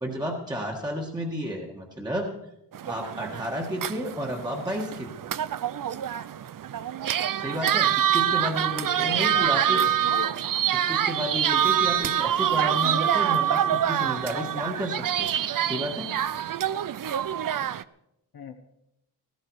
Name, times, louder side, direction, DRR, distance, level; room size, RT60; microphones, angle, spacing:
voice 1, 0.0-2.3 2.8-5.1 7.4-9.8 10.7-15.3 15.7-16.1, equal, 10° right, 0 dB, 1.6 m, -32 dB
sound 1, 2.7-17.8, right 10 dB, 55° right, 0.6 m, -26 dB
voice 2, 9.0-10.3 18.3-18.5, left 6 dB, 65° left, 4 dB, 1.3 m, -39 dB
17.5 x 15.0 x 4.8 m, 0.84 s
wide cardioid pair, 145°, 40 cm